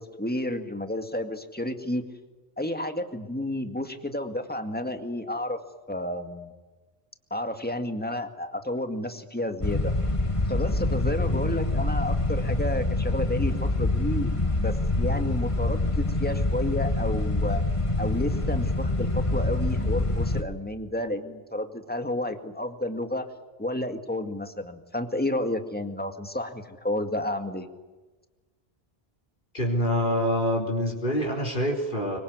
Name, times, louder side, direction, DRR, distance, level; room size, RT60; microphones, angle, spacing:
voice 1, 0.0-2.0 2.6-5.6 5.9-6.5 7.3-9.9 10.5-17.6 18.0-23.3 23.6-27.7, left 1 dB, 10° left, 6 dB, 2.1 m, -31 dB
sound 1, 9.6-20.4, left 2 dB, 30° left, 1.9 m, -26 dB
voice 2, 29.5-32.2, equal, 55° left, 0 dB, 4.3 m, -26 dB
25.0 x 24.0 x 9.5 m, 1.2 s
omnidirectional pair, 1.1 m